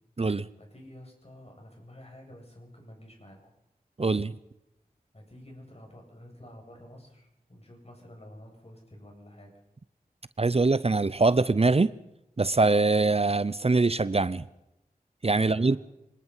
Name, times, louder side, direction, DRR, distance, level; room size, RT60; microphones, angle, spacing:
voice 1, 0.6-3.5 5.1-9.6 15.3-15.8, left 1 dB, 45° left, 2 dB, 7.8 m, -49 dB
voice 2, 4.0-4.3 10.4-11.9 12.4-14.4 15.2-15.8, right 3 dB, 45° right, 16 dB, 0.7 m, -23 dB
26.0 x 19.5 x 5.7 m, 0.88 s
wide cardioid pair, 40°, 15 cm